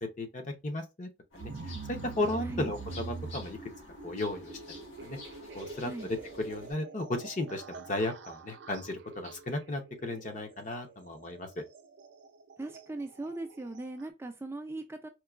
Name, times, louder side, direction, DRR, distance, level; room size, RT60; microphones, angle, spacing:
voice 1, 0.0-3.6 4.0-5.2 5.5-11.5, left 2 dB, 40° left, 0.7 m, -35 dB
sound 1, 1.3-6.7, left 1 dB, 85° left, 1.6 m, -50 dB
sound 2, 1.4-14.1, right 4 dB, 75° right, 0.5 m, -45 dB
voice 2, 12.6-15.1, right 2 dB, 15° right, 0.3 m, -39 dB
4.5 x 2.3 x 2.3 m
head